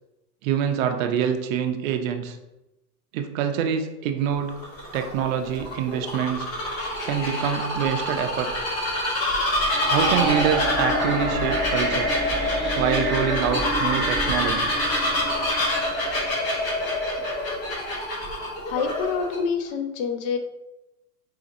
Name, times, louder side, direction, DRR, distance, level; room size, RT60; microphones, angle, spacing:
voice 1, 0.4-2.4 3.1-4.5 4.9-6.5 7.0-8.7 9.9-12.1 12.8-14.7, right 8 dB, 60° right, 7 dB, 0.6 m, -25 dB
Bird vocalization bird call bird song, 4.3-19.4, left 1 dB, 30° left, 1.1 m, -26 dB
sound 1, 9.7-16.8, right 2 dB, ahead, 0.9 m, -29 dB
voice 2, 18.6-20.4, left 5 dB, 55° left, 6 dB, 0.7 m, -27 dB
4.9 x 2.9 x 2.6 m, 0.95 s
supercardioid pair, 140°, 47 cm